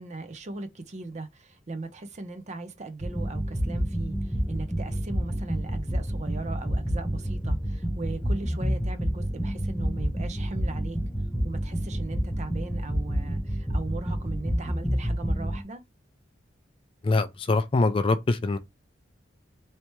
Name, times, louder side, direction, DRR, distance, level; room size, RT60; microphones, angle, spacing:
voice 1, 0.0-11.0 11.4-15.8, right 3 dB, 40° right, 0.6 m, -38 dB
sound 1, 3.0-15.6, equal, ahead, 0.6 m, -28 dB
voice 2, 17.0-18.6, left 3 dB, 30° left, 0.3 m, -23 dB
3.3 x 2.8 x 3.0 m
head